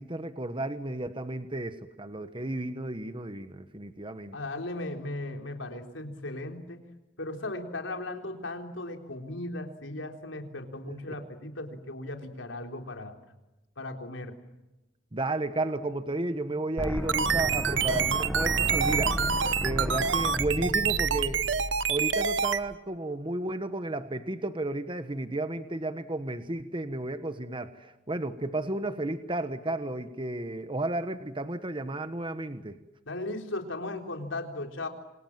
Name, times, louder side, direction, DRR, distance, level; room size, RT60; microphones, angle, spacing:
voice 1, 0.0-4.3 10.9-11.0 15.1-19.2 19.6-21.5 21.9-32.8, right 2 dB, 25° right, 10 dB, 1.3 m, -33 dB
voice 2, 4.3-6.9 7.2-13.2 13.8-14.4 33.1-34.9, left 2 dB, 80° left, 4 dB, 3.9 m, -37 dB
sound 1, 16.8-22.8, equal, ahead, 1.0 m, -34 dB
sound 2, 16.8-22.6, right 7 dB, 70° right, 1.0 m, -27 dB
28.5 x 26.0 x 7.5 m, 1.0 s
head